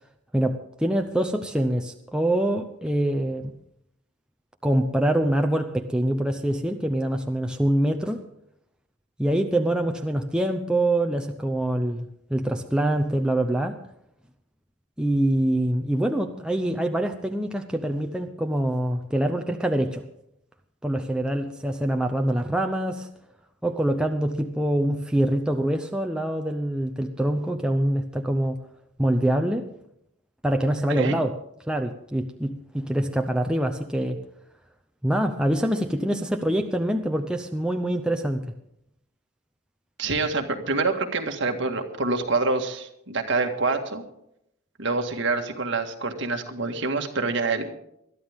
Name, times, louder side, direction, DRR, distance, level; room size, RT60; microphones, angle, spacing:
voice 1, 0.3-3.5 4.6-8.2 9.2-13.8 15.0-20.0 20.8-23.1 23.6-28.6 29.0-29.7 30.4-31.3 31.7-34.2 35.0-38.4, right 1 dB, 5° right, 4 dB, 0.7 m, -25 dB
voice 2, 40.0-44.0 44.8-47.7, right 3 dB, 55° right, 4 dB, 1.8 m, -26 dB
21.5 x 12.5 x 3.6 m, 0.76 s
head